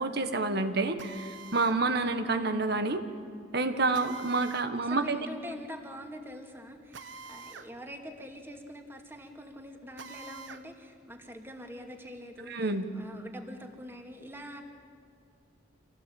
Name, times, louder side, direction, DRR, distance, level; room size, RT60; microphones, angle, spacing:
voice 1, 0.0-3.0 3.5-5.2 12.5-12.9, right 3 dB, 60° right, 9 dB, 1.6 m, -28 dB
Drill, 1.0-1.8 3.9-4.7 6.9-7.7 8.1-8.2 10.0-10.7, right 4 dB, 75° right, 1.2 m, -46 dB
voice 2, 4.8-12.6 12.9-14.6, equal, 10° right, 3 dB, 2.4 m, -45 dB
26.5 x 18.0 x 8.7 m, 2.4 s
head